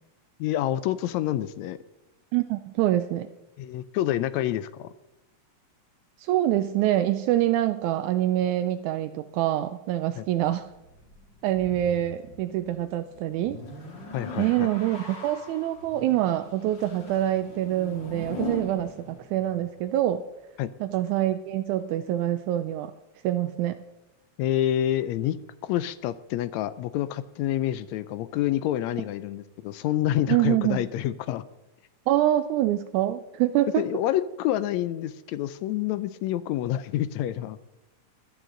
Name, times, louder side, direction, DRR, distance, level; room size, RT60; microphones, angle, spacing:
voice 1, 0.4-1.8 3.6-4.9 10.2-10.3 14.1-14.7 20.6-20.7 24.4-31.4 33.8-37.6, left 12 dB, 80° left, 15 dB, 1.8 m, -28 dB
voice 2, 2.3-3.3 6.2-10.7 11.4-13.6 14.4-20.2 20.8-22.9 23.2-23.8 30.3-30.8 32.1-33.9, right 13 dB, 85° right, 8 dB, 2.0 m, -25 dB
sound 1, 10.3-20.0, left 2 dB, 40° left, 2.5 m, -41 dB
16.0 x 11.5 x 3.8 m, 0.96 s
omnidirectional pair, 3.4 m